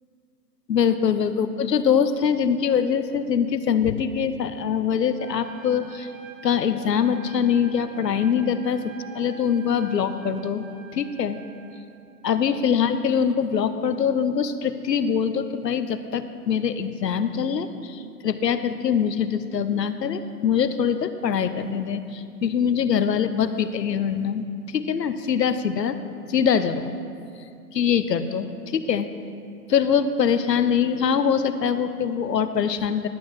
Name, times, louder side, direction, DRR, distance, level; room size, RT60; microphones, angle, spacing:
voice 1, 0.7-6.1 6.4-10.7 10.9-11.4 12.2-26.0 26.3-26.9 27.7-29.1 29.7-33.1, left 7 dB, 85° left, 11 dB, 0.8 m, -23 dB
Trumpet, 5.2-11.9, right 5 dB, 55° right, 1.1 m, -46 dB
11.5 x 6.1 x 6.0 m, 2.4 s
hypercardioid pair, 140°, 48 cm